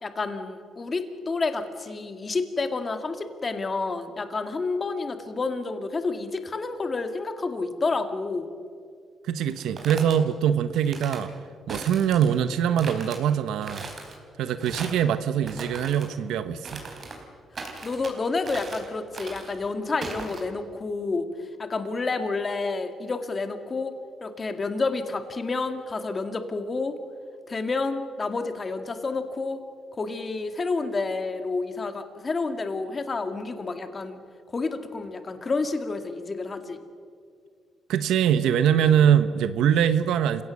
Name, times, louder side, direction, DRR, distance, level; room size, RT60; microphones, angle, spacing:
voice 1, 0.0-8.5 17.8-21.3 21.6-23.9 24.2-26.9 27.5-29.6 29.9-34.2 34.5-36.8, left 3 dB, 30° left, 8 dB, 2.0 m, -29 dB
voice 2, 9.2-11.3 11.7-13.9 14.4-16.8 37.9-40.4, right 9 dB, 85° right, 12 dB, 0.9 m, -23 dB
sound 1, 9.5-10.2 10.7-11.2 11.7-12.4 12.8-13.2 13.6-14.2 14.6-15.1 15.4-16.1 16.6-17.2 17.5-18.1 18.4-18.9 19.1-19.6 20.0-20.4, right 3 dB, 40° right, 4.0 m, -38 dB
28.5 x 16.5 x 6.4 m, 2.2 s
cardioid pair, 105°, 0 cm